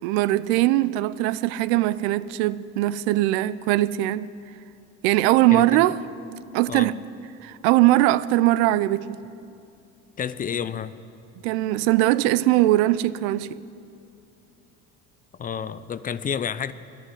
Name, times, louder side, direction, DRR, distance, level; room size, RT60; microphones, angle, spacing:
voice 1, 0.0-4.3 5.0-6.0 6.5-7.0 7.4-9.2 11.4-13.6, right 16 dB, 85° right, 0.5 m, -21 dB
voice 2, 5.5-5.8 6.7-6.9 10.2-11.0 15.4-16.7, left 7 dB, 25° left, 0.4 m, -30 dB
10.5 x 10.0 x 9.5 m
supercardioid pair, 100°, 33 cm